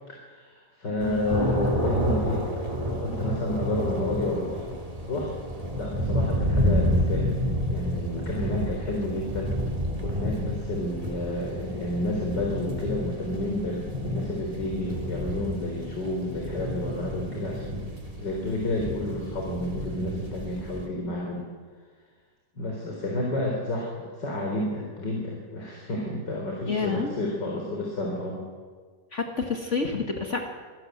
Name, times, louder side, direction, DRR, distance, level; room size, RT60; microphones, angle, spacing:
voice 1, 0.1-2.4 2.9-4.6 5.1-5.3 5.7-7.3 7.7-9.5 10.0-17.8 18.2-21.4 22.5-28.4, left 1 dB, 75° left, -1 dB, 4.5 m, -30 dB
voice 2, 1.0-1.3 26.7-27.2 29.1-30.4, left 4 dB, 40° left, 2 dB, 2.2 m, -29 dB
sound 1, 1.0-20.9, equal, 20° right, 3.0 m, -30 dB
25.5 x 17.5 x 8.0 m, 1.5 s
omnidirectional pair, 1.9 m